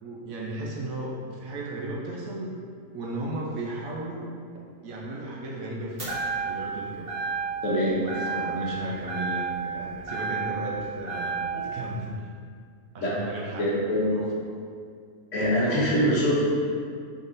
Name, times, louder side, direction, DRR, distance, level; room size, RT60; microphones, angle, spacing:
voice 1, 0.0-2.5 2.9-4.3 4.8-6.1 6.4-7.1 7.9-12.2 12.9-13.7 14.1-14.3 15.7-16.1, right 1 dB, 70° right, -3 dB, 1.0 m, -35 dB
sound 1, 6.0-6.7 7.1-7.7 8.1-8.8 9.1-10.7 11.1-11.7, right 5 dB, 45° right, 1.3 m, -31 dB
voice 2, 7.6-8.0 11.5-11.7 13.0-13.1 13.6-14.1 15.3-16.5, equal, 60° left, -6 dB, 1.0 m, -24 dB
3.7 x 3.6 x 2.5 m, 2.2 s
omnidirectional pair, 1.6 m